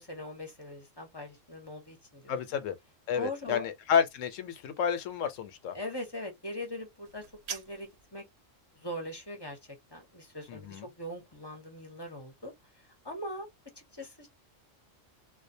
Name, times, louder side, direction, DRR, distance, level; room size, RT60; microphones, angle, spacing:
voice 1, 0.0-2.3 3.1-3.7 5.7-7.2 7.5-8.2 8.7-9.6 9.9-12.5 13.0-13.5 13.8-14.3, left 1 dB, 25° left, 0.7 m, -41 dB
voice 2, 2.3-2.8 3.1-5.8 10.5-10.9, left 7 dB, 80° left, 1.0 m, -30 dB
sound 1, 7.0-8.1, right 7 dB, 60° right, 0.8 m, -42 dB
2.4 x 2.2 x 2.6 m
omnidirectional pair, 1.3 m